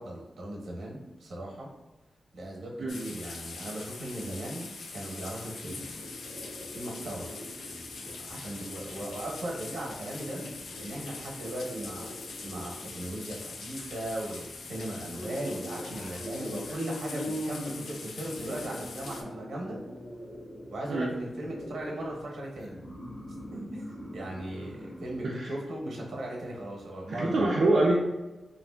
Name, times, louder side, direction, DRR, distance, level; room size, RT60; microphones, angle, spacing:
voice 1, 0.0-1.7 2.3-5.9 6.7-7.3 8.0-10.4 10.8-12.1 12.4-19.8 20.7-22.8 23.5-27.4, right 1 dB, 75° right, -2 dB, 0.7 m, -38 dB
sound 1, 2.9-19.2, left 4 dB, 75° left, 0.3 m, -43 dB
sound 2, 5.6-25.2, equal, 30° left, 0.7 m, -43 dB
voice 2, 27.2-28.0, right 2 dB, 55° right, -4 dB, 0.4 m, -25 dB
2.9 x 2.5 x 2.2 m, 1.1 s
wide cardioid pair, 160°, 0 cm